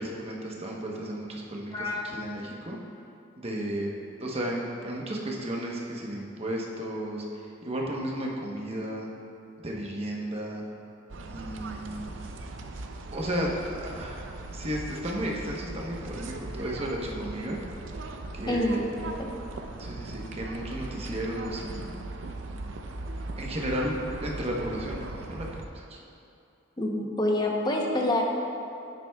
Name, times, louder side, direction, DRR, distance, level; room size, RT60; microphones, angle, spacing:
voice 1, 0.0-2.8 3.4-3.9 4.2-9.1 9.6-10.6 11.3-12.2 13.1-14.2 14.5-17.6 18.3-18.8 19.8-22.0 23.4-25.5 25.7-26.0, right 1 dB, 30° right, -2 dB, 1.0 m, -33 dB
voice 2, 1.7-2.1 18.5-18.7 19.1-19.3 26.8-28.2, left 1 dB, 20° left, 0 dB, 0.8 m, -27 dB
sound 1, 11.1-25.7, right 2 dB, 80° right, 0.6 m, -39 dB
10.0 x 9.3 x 2.3 m, 2.6 s
head